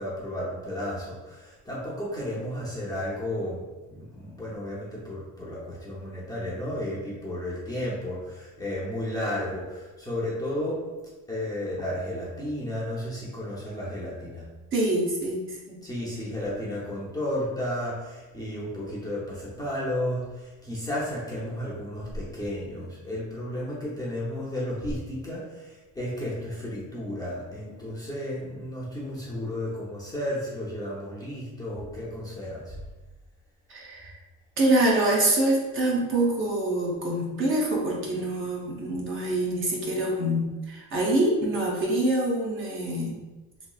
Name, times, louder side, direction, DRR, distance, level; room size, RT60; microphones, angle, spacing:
voice 1, 0.0-3.6 3.9-10.9 11.3-14.5 15.8-32.8, left 1 dB, 10° left, -7 dB, 0.6 m, -33 dB
voice 2, 14.7-15.7 33.7-34.1 34.6-43.2, right 1 dB, 35° right, -3 dB, 0.7 m, -25 dB
3.0 x 3.0 x 2.3 m, 1.2 s
cardioid pair, 145°, 34 cm